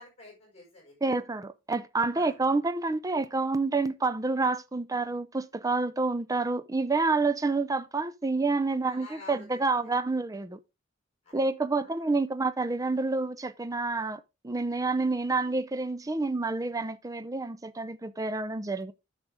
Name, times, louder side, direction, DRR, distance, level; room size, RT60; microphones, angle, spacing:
voice 1, 0.0-1.2 2.1-2.3 8.8-9.5 11.2-11.4 11.8-12.0, left 2 dB, 30° left, 5.6 m, -48 dB
voice 2, 1.0-10.6 11.3-18.9, right 3 dB, 15° right, 0.5 m, -28 dB
9.7 x 6.7 x 3.5 m
head